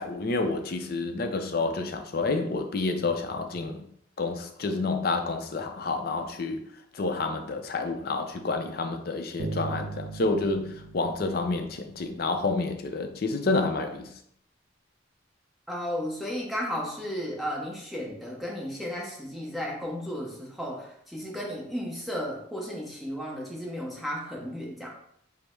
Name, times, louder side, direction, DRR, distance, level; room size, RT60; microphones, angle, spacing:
voice 1, 0.0-3.8 4.2-6.6 6.9-10.7 10.9-14.1, left 3 dB, 50° left, 6 dB, 0.5 m, -29 dB
Bass guitar, 9.4-12.5, right 3 dB, 80° right, 0.7 m, -38 dB
voice 2, 15.7-24.9, equal, ahead, -3 dB, 0.8 m, -34 dB
5.1 x 2.1 x 4.4 m, 0.69 s
head